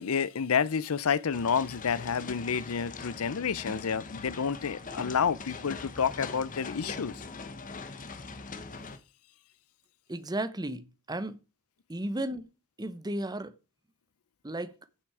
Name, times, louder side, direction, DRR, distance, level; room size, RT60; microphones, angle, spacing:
voice 1, 0.0-7.2, left 6 dB, 80° left, 0.6 m, -29 dB
sound 1, 1.3-9.0, left 4 dB, 40° left, 1.1 m, -42 dB
voice 2, 10.1-11.4 11.9-12.5 12.8-13.5 14.4-14.7, right 1 dB, 20° right, 0.9 m, -34 dB
15.0 x 6.0 x 4.8 m
head